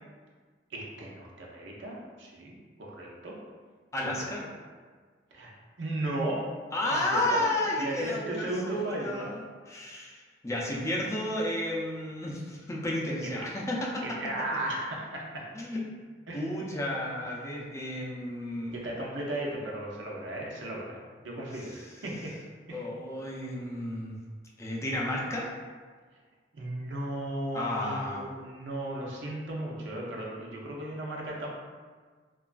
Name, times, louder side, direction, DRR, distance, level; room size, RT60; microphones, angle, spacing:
voice 1, 0.7-3.4 4.0-4.3 5.3-5.5 5.8-6.4 6.9-7.5 7.8-9.3 14.0-15.4 16.3-16.5 18.7-21.0 21.2-22.3 22.7-22.8 26.5-31.5, right 1 dB, 90° right, -2 dB, 0.6 m, -35 dB
voice 2, 3.9-4.4 6.7-14.2 15.5-15.8 16.3-18.9 21.6-21.8 22.7-24.2 24.6-25.5 27.5-28.2, left 1 dB, 15° left, -4 dB, 0.4 m, -32 dB
2.9 x 2.3 x 2.4 m, 1.5 s
head